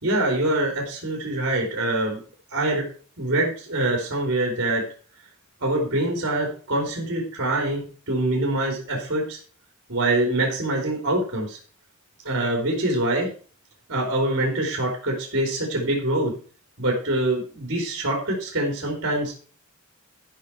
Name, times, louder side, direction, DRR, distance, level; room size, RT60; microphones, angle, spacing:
voice 1, 0.0-2.2 2.5-2.8 3.2-4.8 5.6-9.4 9.9-11.6 12.3-13.3 13.9-16.3 16.8-19.3, right 1 dB, 60° right, 0 dB, 3.5 m, -24 dB
13.5 x 5.8 x 4.9 m, 0.41 s
head